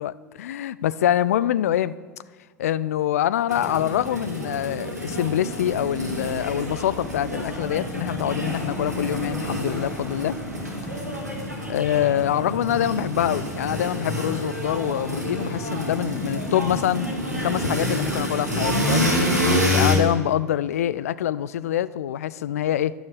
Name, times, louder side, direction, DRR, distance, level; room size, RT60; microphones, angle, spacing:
voice 1, 0.0-1.9 2.6-10.4 11.7-17.1 17.4-19.0 19.7-22.9, left 11 dB, 65° left, 18 dB, 0.5 m, -25 dB
sound 1, 3.5-20.0, equal, 85° right, 2.8 m, -27 dB
sound 2, 5.7-11.1, left 2 dB, 15° left, 2.7 m, -39 dB
11.5 x 11.5 x 8.4 m, 1.4 s
figure-of-eight pair, 75°, 9 cm